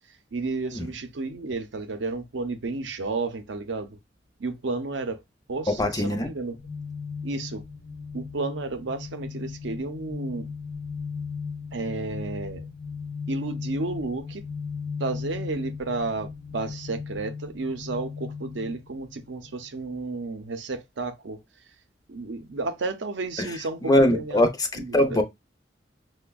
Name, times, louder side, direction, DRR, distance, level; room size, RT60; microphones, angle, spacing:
voice 1, 0.0-4.0 4.4-5.2 5.5-6.6 7.2-7.6 8.1-10.5 11.7-12.7 13.3-14.4 15.0-21.4 22.1-24.4 24.8-24.9, right 3 dB, 85° right, 0.6 m, -32 dB
voice 2, 5.7-6.3 23.4-25.2, left 1 dB, 20° left, 0.5 m, -23 dB
sound 1, 6.6-19.6, left 5 dB, 90° left, 0.8 m, -36 dB
5.8 x 2.1 x 2.2 m
head